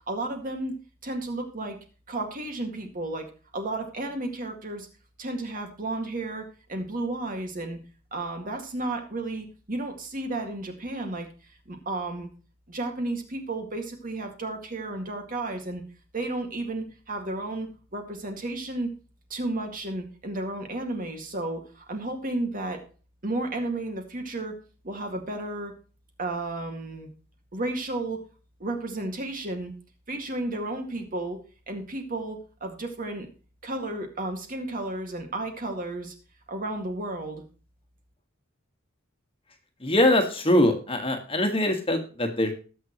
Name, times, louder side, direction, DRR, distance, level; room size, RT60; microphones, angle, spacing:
voice 1, 0.1-0.7 1.0-1.8 2.1-3.3 3.5-4.9 5.2-7.8 8.1-11.3 11.7-12.3 12.7-15.8 16.1-18.9 19.3-22.8 23.2-24.6 24.8-25.7 26.2-27.1 27.5-28.2 28.6-29.7 30.1-31.4 31.7-33.3 33.6-36.1 36.5-37.4, right 2 dB, 40° right, 4 dB, 2.1 m, -32 dB
voice 2, 39.8-42.6, left 1 dB, 25° left, 5 dB, 1.7 m, -23 dB
19.5 x 6.6 x 3.1 m, 0.37 s
head